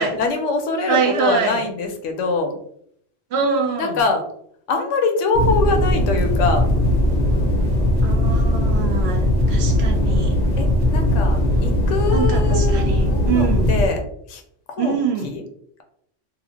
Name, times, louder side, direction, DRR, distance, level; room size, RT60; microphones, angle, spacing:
voice 1, 0.0-2.6 3.8-4.2 4.7-6.6 10.6-14.0 14.3-14.4 14.7-15.0 15.2-15.4, left 3 dB, 80° left, 4 dB, 0.9 m, -23 dB
voice 2, 0.9-1.6 3.3-4.0 8.0-10.4 12.1-13.8 14.8-15.3, right 6 dB, 65° right, 4 dB, 0.8 m, -24 dB
sound 1, 5.3-13.9, left 1 dB, 50° left, 0.6 m, -19 dB
2.9 x 2.0 x 2.8 m, 0.66 s
omnidirectional pair, 1.2 m